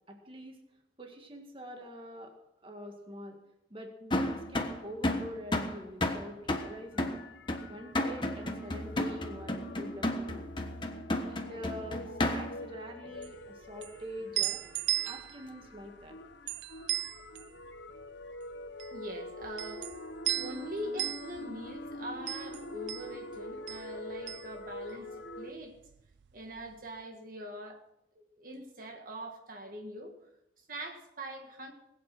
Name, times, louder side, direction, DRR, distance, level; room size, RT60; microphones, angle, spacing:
voice 1, 0.1-0.6 1.0-2.4 2.6-3.4 3.7-7.2 7.7-10.5 11.2-14.6 15.0-16.2, equal, 30° right, 3 dB, 1.9 m, -45 dB
sound 1, 4.1-12.7, left 1 dB, 25° left, 1.3 m, -33 dB
sound 2, 6.6-25.5, left 1 dB, 80° left, 1.0 m, -46 dB
sound 3, 13.1-25.4 25.7-26.7, right 13 dB, 75° right, 0.4 m, -38 dB
voice 2, 18.9-19.9 20.3-25.8 26.3-27.8 28.2-30.1 30.6-31.7, equal, 50° right, 3 dB, 1.8 m, -43 dB
21.0 x 8.8 x 6.2 m, 0.86 s
head